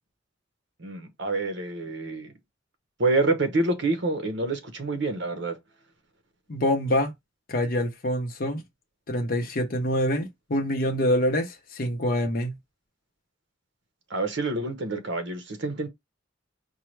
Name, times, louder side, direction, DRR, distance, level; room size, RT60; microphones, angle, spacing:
voice 1, 0.8-2.3 3.0-5.6 14.1-15.9, right 2 dB, 65° right, 0.9 m, -27 dB
voice 2, 6.5-7.1 7.5-8.6 9.1-12.5, left 1 dB, 50° left, 0.7 m, -25 dB
4.5 x 2.1 x 3.2 m
head